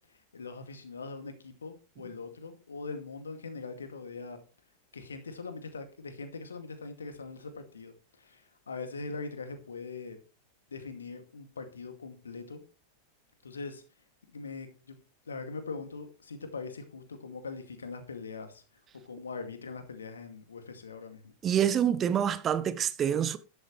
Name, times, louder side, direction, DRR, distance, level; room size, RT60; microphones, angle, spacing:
voice 1, 0.3-4.4 4.9-10.2 10.7-12.6 13.4-13.8 14.3-15.0 15.3-18.6 19.1-21.3, left 4 dB, 70° left, 2.4 m, -42 dB
voice 2, 21.4-23.4, right 9 dB, 25° right, 1.0 m, -26 dB
12.5 x 11.5 x 3.3 m
figure-of-eight pair, 90°, 0 cm